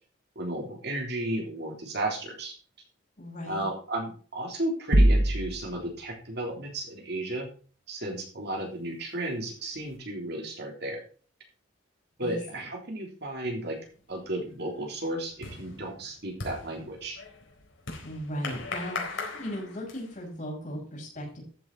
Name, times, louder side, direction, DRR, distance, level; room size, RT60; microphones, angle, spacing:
voice 1, 0.4-2.5 3.5-7.5 7.9-11.0 12.2-13.8 14.1-17.2, right 1 dB, 55° right, 1 dB, 3.5 m, -34 dB
voice 2, 3.2-3.7 12.2-12.7 18.0-21.4, equal, 40° left, -2 dB, 6.6 m, -37 dB
sound 1, 4.9-5.9, right 1 dB, 75° right, 1.8 m, -21 dB
sound 2, 13.8-14.2 14.5-20.3, left 3 dB, 85° left, 4.1 m, -39 dB
14.0 x 8.0 x 4.1 m, 0.40 s
head